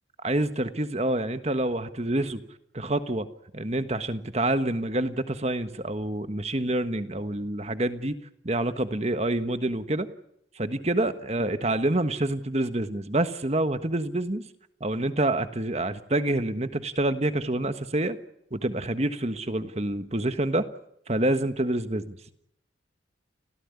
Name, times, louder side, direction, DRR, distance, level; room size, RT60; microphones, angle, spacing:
voice 1, 0.2-2.4 2.7-3.3 3.5-8.1 8.4-10.1 10.5-14.4 14.8-18.2 18.5-20.7 21.1-22.2, right 1 dB, 35° right, 10 dB, 1.4 m, -27 dB
30.0 x 16.0 x 9.7 m, 0.78 s
head